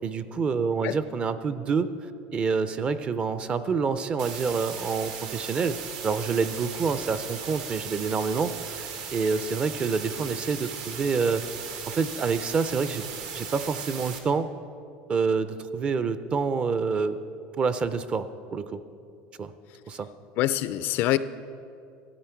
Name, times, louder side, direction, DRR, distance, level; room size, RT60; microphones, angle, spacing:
voice 1, 0.0-1.9 2.3-5.8 6.0-13.1 13.3-14.5 15.1-17.2 17.6-18.8 19.4-19.5 19.9-20.1, right 5 dB, 25° right, 13 dB, 0.4 m, -27 dB
sound 1, 4.2-14.2, right 7 dB, 70° right, 1.2 m, -37 dB
voice 2, 20.4-21.2, left 14 dB, 50° left, 15 dB, 0.3 m, -24 dB
14.0 x 9.4 x 4.5 m, 2.5 s
cardioid pair, 150°, 4 cm